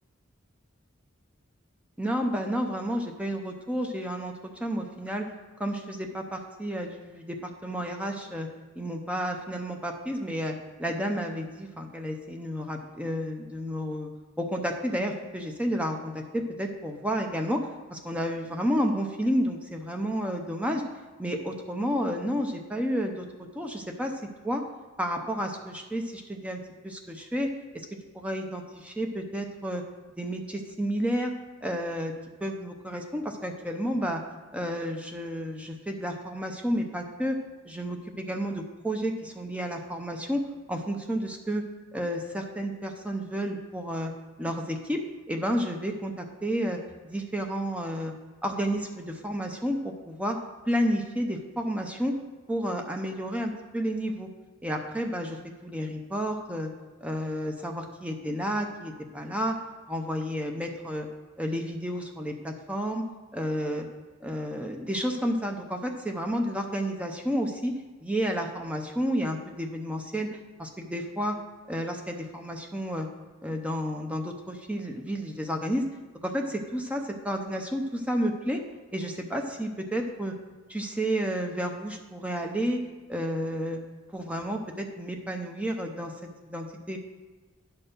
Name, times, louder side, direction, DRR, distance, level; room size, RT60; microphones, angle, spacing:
voice 1, 2.0-4.3 4.6-5.3 5.6-8.5 8.8-10.5 10.8-14.1 14.4-20.8 21.2-23.2 23.5-24.6 25.0-27.9 28.1-29.8 30.2-31.3 31.6-32.1 32.4-34.2 34.5-37.4 37.6-40.4 40.7-41.6 41.9-44.1 44.4-45.0 45.3-46.8 47.0-48.1 48.4-50.4 50.7-52.1 52.5-54.3 54.6-56.7 57.0-59.6 59.9-61.1 61.4-63.0 63.3-63.9 64.2-67.7 68.0-70.3 70.6-71.4 71.7-73.1 73.4-75.9 76.2-78.6 78.9-80.3 80.7-82.8 83.1-83.8 84.1-86.1 86.4-87.0, equal, 5° right, 3 dB, 0.6 m, -31 dB
9.6 x 4.4 x 6.6 m, 1.3 s
head